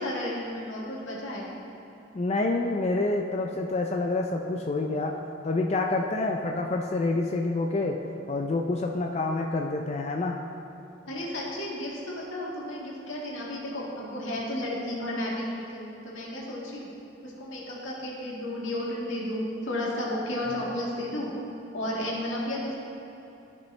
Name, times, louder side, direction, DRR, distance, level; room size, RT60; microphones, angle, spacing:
voice 1, 0.0-1.6 11.1-16.9 17.2-21.3 21.7-22.8, left 1 dB, 85° left, -4 dB, 1.9 m, -33 dB
voice 2, 2.1-5.2 5.4-8.0 8.3-10.4, left 2 dB, 35° left, 1 dB, 0.4 m, -27 dB
13.5 x 5.3 x 3.2 m, 3.0 s
head